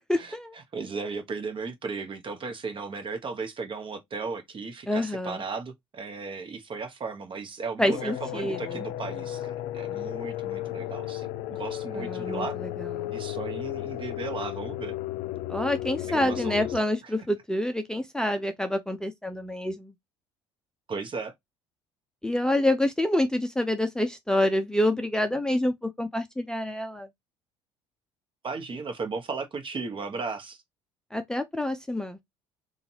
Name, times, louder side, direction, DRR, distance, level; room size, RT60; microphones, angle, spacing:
voice 1, 0.1-0.5 4.9-5.4 7.8-8.8 11.9-13.1 15.5-19.9 22.2-27.1 31.1-32.2, left 1 dB, 5° left, 0.6 m, -27 dB
voice 2, 0.7-12.6 13.1-14.9 16.1-16.7 17.0-17.1 20.9-21.3 28.4-30.6, right 4 dB, 40° right, 1.1 m, -35 dB
sound 1, 7.9-16.8, left 14 dB, 65° left, 0.4 m, -34 dB
3.7 x 2.5 x 2.8 m
hypercardioid pair, 65°, 14 cm